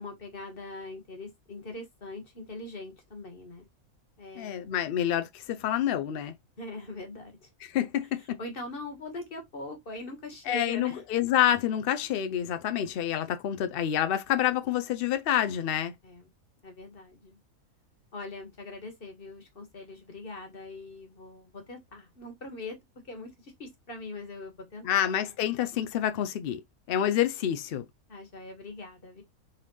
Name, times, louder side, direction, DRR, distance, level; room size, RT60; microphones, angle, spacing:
voice 1, 0.0-3.7 4.2-4.9 6.6-7.5 8.2-11.0 16.0-16.3 16.6-17.4 18.1-22.8 23.0-25.1 28.1-29.2, left 2 dB, 40° left, 1.5 m, -42 dB
voice 2, 4.4-6.3 7.7-8.4 10.5-15.9 24.8-26.6 26.9-27.9, left 11 dB, 70° left, 0.5 m, -28 dB
4.4 x 3.6 x 3.1 m
omnidirectional pair, 1.5 m